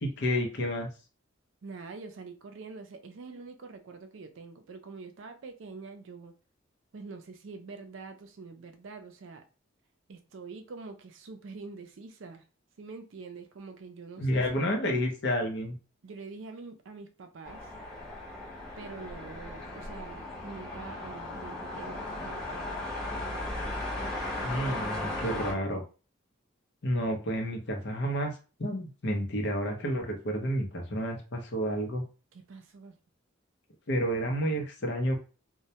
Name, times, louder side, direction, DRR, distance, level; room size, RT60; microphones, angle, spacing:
voice 1, 0.0-0.9 14.2-15.7 24.4-25.8 26.8-28.3 28.6-32.0 33.9-35.2, equal, 55° left, 0.6 m, -30 dB
voice 2, 1.6-6.3 6.9-9.4 10.1-12.4 12.8-14.6 16.0-17.7 18.8-22.8 32.3-33.0, right 4 dB, 70° right, 0.4 m, -45 dB
sound 1, 17.4-25.5, left 2 dB, ahead, 0.8 m, -36 dB
2.1 x 2.1 x 2.7 m
head